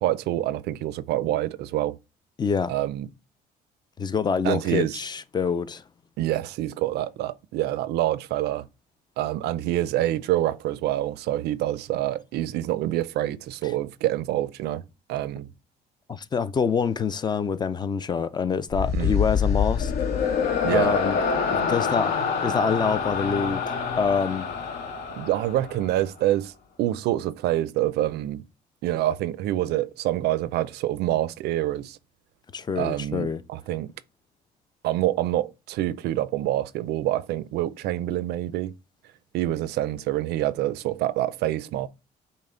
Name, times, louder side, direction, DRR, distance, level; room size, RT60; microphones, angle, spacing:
voice 1, 0.0-2.0 2.7-3.1 4.4-5.0 6.2-8.7 9.2-14.8 15.1-15.5 18.9-19.2 20.6-21.0 25.2-26.5 26.8-28.5 28.8-32.0 32.8-33.9 34.8-38.7 39.3-41.9, right 14 dB, 75° right, 0.4 m, -26 dB
voice 2, 2.4-2.7 4.0-5.8 13.6-13.7 16.1-19.9 20.7-21.2 21.5-22.1 22.4-24.5 32.5-33.4, left 5 dB, 25° left, 0.4 m, -26 dB
sound 1, 18.7-26.1, left 6 dB, 70° left, 1.0 m, -26 dB
5.4 x 2.1 x 3.6 m
cardioid pair, 110°, 17 cm